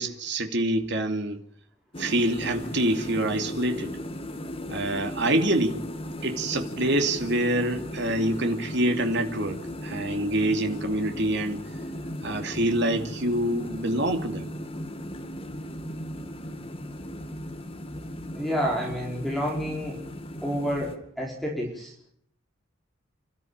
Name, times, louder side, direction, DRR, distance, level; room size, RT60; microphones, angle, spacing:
voice 1, 0.0-1.4 2.0-4.0 4.7-5.8 6.2-11.6 12.2-14.5, right 1 dB, 55° right, 2.8 m, -26 dB
sound 1, 1.9-21.0, left 1 dB, 25° left, 2.3 m, -37 dB
voice 2, 18.3-20.0 20.4-21.9, equal, ahead, 4.7 m, -29 dB
29.5 x 13.0 x 8.8 m
head